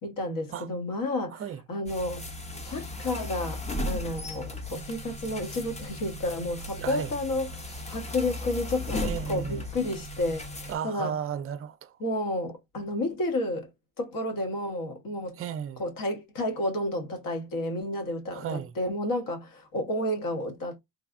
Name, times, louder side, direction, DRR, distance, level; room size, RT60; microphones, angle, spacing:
voice 1, 0.0-1.4 1.7-2.3 2.6-11.1 12.0-13.7 14.0-15.4 15.8-20.8, left 1 dB, 55° left, 1.3 m, -31 dB
Ringtone Amaryllis, 1.9-10.8, left 1 dB, 15° left, 0.7 m, -36 dB
voice 2, 6.8-7.1 9.0-9.6 10.7-11.9 15.4-15.8 18.3-18.7, right 8 dB, 35° right, 0.5 m, -34 dB
3.2 x 2.3 x 2.4 m
cardioid pair, 100°, 40 cm